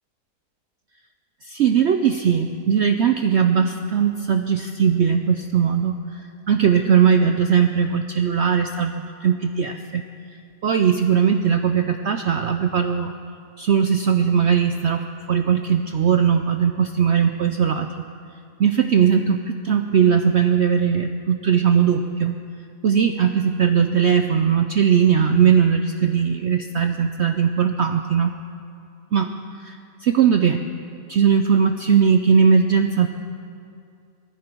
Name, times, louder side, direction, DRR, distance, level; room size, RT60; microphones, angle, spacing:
voice 1, 1.4-6.2 6.5-10.0 10.6-13.1 13.6-17.9 18.6-22.3 22.8-28.3 29.1-29.3 29.6-30.6 31.1-33.1, right 7 dB, 70° right, 7 dB, 0.6 m, -19 dB
19.0 x 14.0 x 4.5 m, 2.4 s
omnidirectional pair, 1.7 m